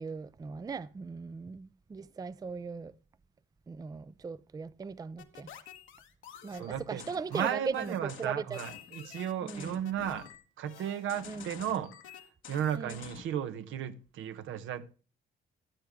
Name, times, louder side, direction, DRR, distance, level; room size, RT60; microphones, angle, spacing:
voice 1, 0.0-2.9 3.7-5.5 6.4-8.6 9.4-9.7 11.3-11.5 12.7-12.9, right 5 dB, 20° right, 0.4 m, -38 dB
sound 1, 5.2-13.4, left 9 dB, 80° left, 1.3 m, -49 dB
voice 2, 6.5-7.0 7.3-10.3 10.6-11.9 12.5-14.9, right 9 dB, 80° right, 0.9 m, -34 dB
13.0 x 7.5 x 3.3 m
cardioid pair, 90°, 20 cm